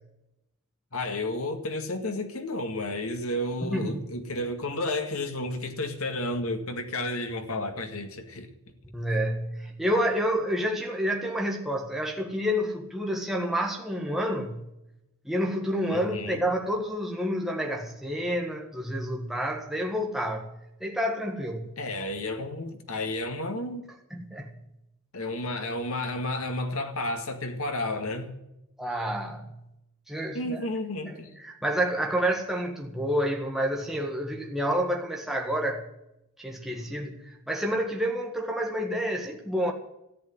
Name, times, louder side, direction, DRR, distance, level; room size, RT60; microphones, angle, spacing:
voice 1, 0.9-8.5 15.9-16.4 21.8-23.9 25.1-28.3 30.3-31.4, left 1 dB, 75° left, 2.0 m, -32 dB
voice 2, 3.6-4.1 8.9-14.6 15.2-20.5 20.8-21.7 24.1-24.5 28.8-29.5 30.1-30.7 31.1-35.8 36.4-39.7, equal, ahead, 1.6 m, -29 dB
14.0 x 8.4 x 9.3 m
head